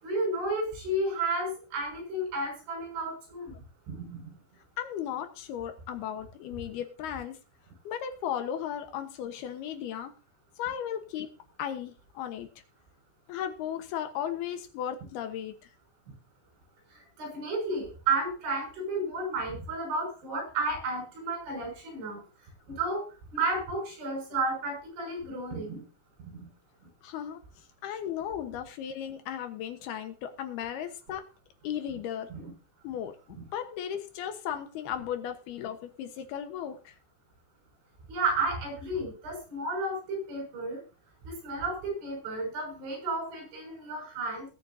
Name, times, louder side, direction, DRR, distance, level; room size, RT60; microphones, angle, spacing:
voice 1, 0.0-3.6 3.9-4.3 16.9-22.2 22.7-23.1 23.3-25.8 26.2-26.4 32.3-32.5 33.4-33.5 38.1-40.8 41.3-44.5, right 2 dB, 75° right, 2 dB, 8.6 m, -32 dB
voice 2, 4.8-7.4 7.8-10.1 10.6-11.3 11.6-12.5 13.3-15.7 27.0-27.4 27.8-31.2 31.6-32.3 32.8-36.9, left 9 dB, 65° left, 8 dB, 2.9 m, -36 dB
21.5 x 8.7 x 2.8 m, 0.34 s
omnidirectional pair, 5.4 m